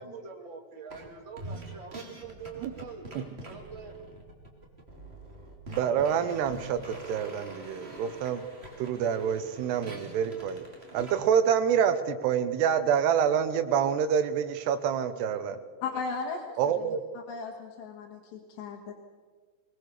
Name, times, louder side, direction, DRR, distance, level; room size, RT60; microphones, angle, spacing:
voice 1, 0.0-4.1, right 5 dB, 35° right, 3 dB, 2.1 m, -44 dB
sound 1, 0.9-1.1 1.4-11.2, right 1 dB, 20° right, 2.4 m, -45 dB
voice 2, 5.7-8.4 8.8-10.6 10.9-15.6 16.6-17.0, right 8 dB, 75° right, 10 dB, 3.1 m, -27 dB
voice 3, 15.8-16.9 17.1-18.9, left 4 dB, 85° left, -1 dB, 4.0 m, -36 dB
22.0 x 20.0 x 6.7 m, 1.5 s
omnidirectional pair, 4.9 m